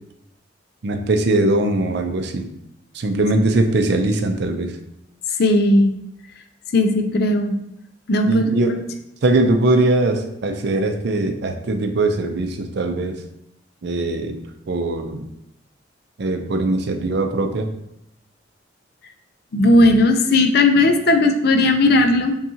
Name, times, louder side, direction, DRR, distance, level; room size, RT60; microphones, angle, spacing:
voice 1, 0.8-2.5 2.9-4.8 8.3-8.8 9.2-13.2 13.8-14.4 14.7-15.2 16.2-17.7, right 2 dB, 60° right, 6 dB, 0.5 m, -20 dB
voice 2, 5.4-5.9 6.7-7.6 8.1-8.4 19.5-22.4, left 2 dB, 55° left, 6 dB, 0.4 m, -16 dB
5.5 x 2.3 x 2.7 m, 0.81 s
head